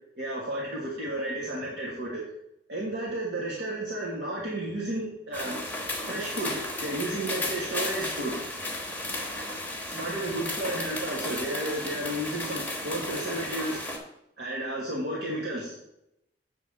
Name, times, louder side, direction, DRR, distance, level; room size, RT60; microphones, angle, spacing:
voice 1, 0.2-2.2 2.7-5.6 6.1-8.4 9.9-13.8 14.4-15.7, right 1 dB, 70° right, -5 dB, 1.6 m, -32 dB
sound 1, 5.3-14.0, left 1 dB, 10° left, 1.2 m, -34 dB
7.8 x 3.7 x 6.6 m, 0.82 s
head